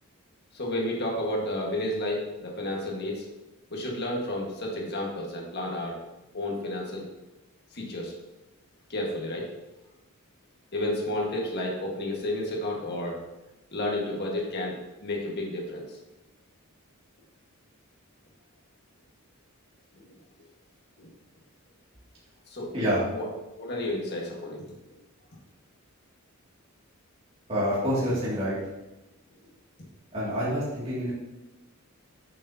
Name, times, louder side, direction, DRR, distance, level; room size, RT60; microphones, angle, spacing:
voice 1, 0.5-3.3 3.7-6.0 6.3-7.1 7.7-8.1 8.9-9.5 10.7-13.2 13.7-16.0 19.9-20.1 21.0-21.1 22.5-22.7 23.1-23.2 23.6-24.9, left 1 dB, 50° left, -1 dB, 1.6 m, -31 dB
voice 2, 27.5-28.6 30.1-31.1, equal, 25° right, -9 dB, 2.3 m, -27 dB
9.1 x 6.6 x 2.8 m, 1.0 s
head